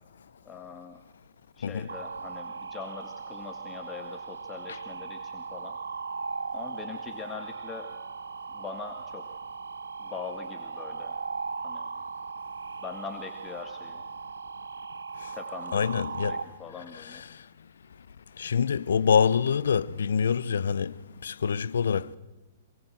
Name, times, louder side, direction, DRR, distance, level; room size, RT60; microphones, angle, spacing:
voice 1, 0.4-1.0 1.6-5.8 6.5-7.9 8.5-9.3 10.0-11.2 11.6-11.9 12.8-14.0 15.3-17.2, left 6 dB, 20° left, 1.8 m, -42 dB
sound 1, 1.9-16.4, right 5 dB, 80° right, 1.6 m, -38 dB
voice 2, 15.7-16.4 16.9-17.3 18.4-20.9 21.2-22.2, left 7 dB, 70° left, 0.8 m, -26 dB
26.5 x 21.0 x 7.9 m
figure-of-eight pair, 115°, 0 cm